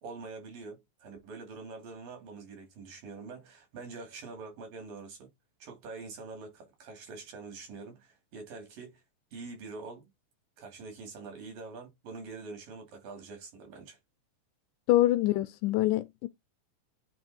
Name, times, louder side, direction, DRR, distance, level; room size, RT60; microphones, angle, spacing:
voice 1, 0.0-5.3 5.6-9.0 9.3-10.1 10.6-14.0, right 4 dB, 80° right, 4.5 m, -45 dB
voice 2, 14.9-16.3, left 15 dB, 80° left, 2.0 m, -25 dB
9.3 x 3.2 x 4.3 m
omnidirectional pair, 3.9 m